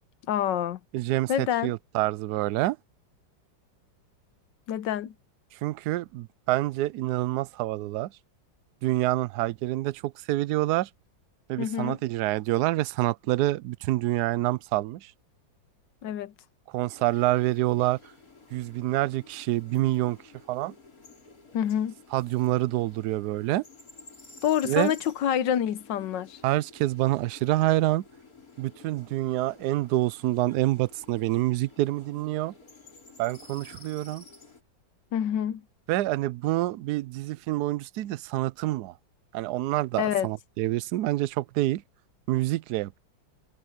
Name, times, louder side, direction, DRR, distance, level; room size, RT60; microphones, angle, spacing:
voice 1, 0.3-0.8 1.3-1.7 4.7-5.1 11.6-12.0 16.0-16.3 21.5-21.9 24.4-26.4 35.1-35.6 40.0-40.3, left 10 dB, 70° left, 1.4 m, -27 dB
voice 2, 0.9-2.8 5.6-8.1 8.8-10.9 11.5-15.1 16.7-18.0 18.5-20.2 20.5-20.7 22.1-23.6 24.6-24.9 26.4-28.0 28.6-32.5 33.2-34.2 35.9-38.9 39.3-41.8 42.3-43.0, right 16 dB, 75° right, 0.9 m, -27 dB
sound 1, 16.9-34.6, left 3 dB, 45° left, 5.0 m, -52 dB
omnidirectional pair, 2.2 m